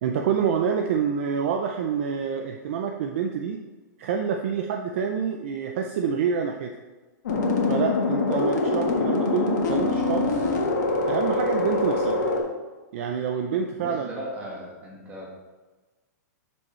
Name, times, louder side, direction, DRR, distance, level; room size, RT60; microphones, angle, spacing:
voice 1, 0.0-3.6 4.0-6.7 7.7-10.4 11.1-12.2 12.9-14.1, right 7 dB, 45° right, 4 dB, 0.5 m, -27 dB
sound 1, 7.2-12.4, left 3 dB, 70° left, 1.5 m, -24 dB
voice 2, 13.8-15.3, right 1 dB, 15° right, -3 dB, 1.5 m, -37 dB
7.5 x 6.2 x 3.2 m, 1.3 s
hypercardioid pair, 170°, 10 cm